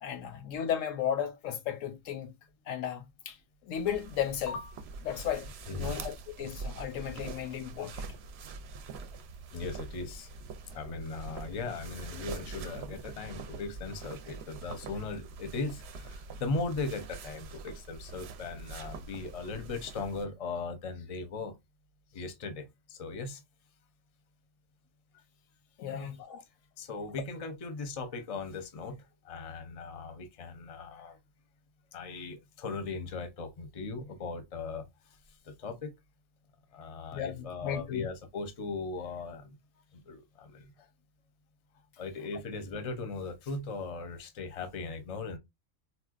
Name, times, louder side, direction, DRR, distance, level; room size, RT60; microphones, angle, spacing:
voice 1, 0.0-2.3 2.7-3.4 3.7-4.7 5.0-5.5 5.7-8.1 25.8-26.4 37.1-38.0, left 9 dB, 85° left, 1.0 m, -34 dB
sound 1, 3.8-20.3, right 4 dB, 65° right, 0.7 m, -44 dB
voice 2, 5.7-6.0 9.5-10.3 10.7-21.6 22.1-23.4 25.9-26.1 26.8-31.2 31.9-35.2 35.4-35.9 36.7-39.6 39.9-40.9 42.0-45.4, left 3 dB, 40° left, 0.6 m, -38 dB
4.3 x 2.2 x 2.4 m
omnidirectional pair, 1.3 m